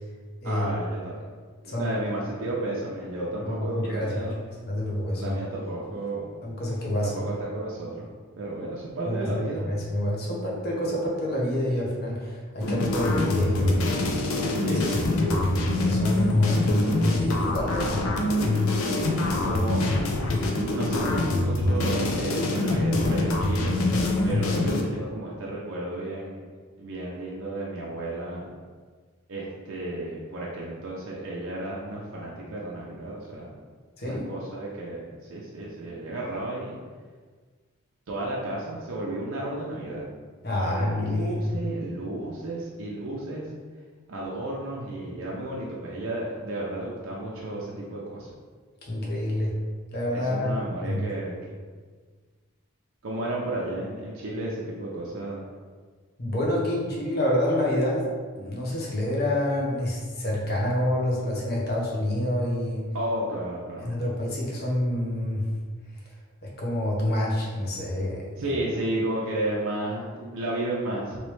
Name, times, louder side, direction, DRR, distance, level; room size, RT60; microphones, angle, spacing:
voice 1, 0.4-1.2 1.6-4.4 5.1-6.3 7.0-8.1 8.4-9.6 14.5-15.5 19.4-19.8 20.7-23.8 24.2-26.4 26.8-28.5 29.3-33.5 34.0-35.0 35.3-36.8 38.1-40.0 40.6-43.5 44.1-48.3 50.1-51.5 53.0-55.4 62.9-63.9 68.4-71.2, right 1 dB, 70° right, -5 dB, 0.5 m, -32 dB
voice 2, 1.7-2.0 3.4-4.2 4.6-5.4 6.4-7.1 9.0-9.3 9.6-14.1 14.7-14.8 15.2-18.1 34.0-34.2 40.4-41.5 48.9-49.5 49.9-50.5 50.8-51.0 56.2-58.1 58.4-62.9 63.8-65.4 66.4-68.3, left 1 dB, 45° left, -4 dB, 0.8 m, -27 dB
sound 1, 12.6-24.8, left 2 dB, 75° left, 0.5 m, -25 dB
3.1 x 3.0 x 3.1 m, 1.5 s
head